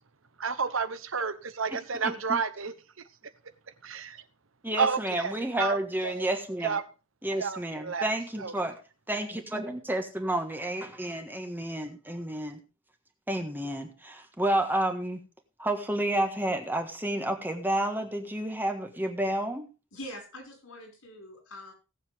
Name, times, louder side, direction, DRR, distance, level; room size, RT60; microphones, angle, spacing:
voice 1, 0.4-2.7 3.8-4.2 4.8-6.3 6.6-6.8 7.4-8.1 8.4-8.5, right 5 dB, 75° right, 1.0 m, -31 dB
voice 2, 2.0-2.4 4.6-6.8 7.2-8.8 9.1-12.6 13.3-15.2 15.6-19.7, right 1 dB, 10° right, 1.5 m, -30 dB
voice 3, 19.9-21.7, left 1 dB, 90° left, 5.6 m, -44 dB
18.0 x 7.4 x 3.6 m
head